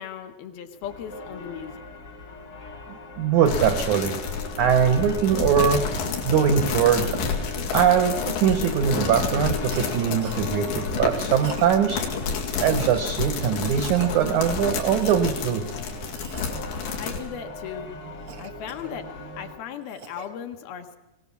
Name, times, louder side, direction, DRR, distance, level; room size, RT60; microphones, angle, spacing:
voice 1, 0.0-1.8 17.0-17.9 18.4-19.1 19.4-21.0, left 8 dB, 70° left, 6 dB, 2.5 m, -37 dB
sound 1, 0.8-19.6, left 2 dB, 50° left, 1.2 m, -39 dB
voice 2, 3.2-4.2 4.6-5.8 6.2-7.2 7.7-12.0 12.6-15.6, right 8 dB, 85° right, 8 dB, 1.6 m, -22 dB
sound 2, 3.5-17.2, left 5 dB, 90° left, 4.5 m, -29 dB
Cough, 9.7-10.0 10.2-10.5 11.3-11.8 12.5-13.0 13.7-14.1 14.8-15.3 16.1-16.6 17.0-17.3 18.3-19.2 19.7-20.3, right 5 dB, 70° right, 1.2 m, -43 dB
22.5 x 18.0 x 7.2 m, 1.0 s
omnidirectional pair, 4.9 m